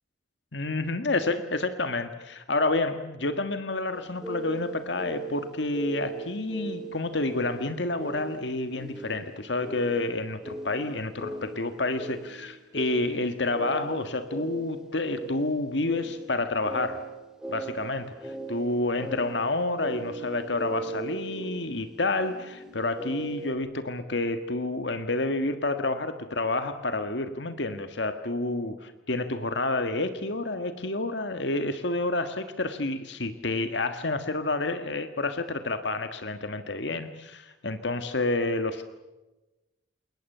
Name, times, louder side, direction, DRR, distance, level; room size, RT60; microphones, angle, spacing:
voice 1, 0.5-17.0 17.5-38.8, left 2 dB, 75° left, 9 dB, 1.7 m, -29 dB
sound 1, 3.9-23.5, right 2 dB, 5° right, 3.6 m, -39 dB
28.5 x 22.0 x 6.8 m, 1.1 s
head